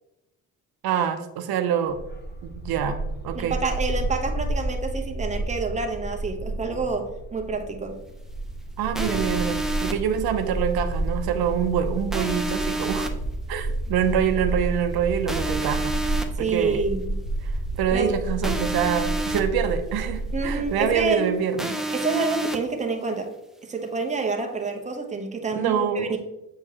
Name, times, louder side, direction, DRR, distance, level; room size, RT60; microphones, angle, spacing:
voice 1, 0.8-2.0 2.6-3.0 3.2-3.6 8.8-13.1 13.5-16.0 16.4-16.8 17.4-21.8 25.6-26.2, right 8 dB, 80° right, 7 dB, 0.6 m, -25 dB
Bark, 1.9-21.0, right 2 dB, 25° left, 0.9 m, -30 dB
voice 2, 3.3-8.0 16.4-17.2 17.9-18.1 20.3-21.3 21.9-23.3 23.6-26.2, right 3 dB, 20° right, 3 dB, 0.9 m, -28 dB
sound 1, 8.9-9.9 12.1-13.1 15.3-16.2 18.4-19.4 21.6-22.6, right 1 dB, ahead, 0.5 m, -29 dB
7.3 x 4.4 x 2.9 m, 0.95 s
cardioid pair, 110°, 37 cm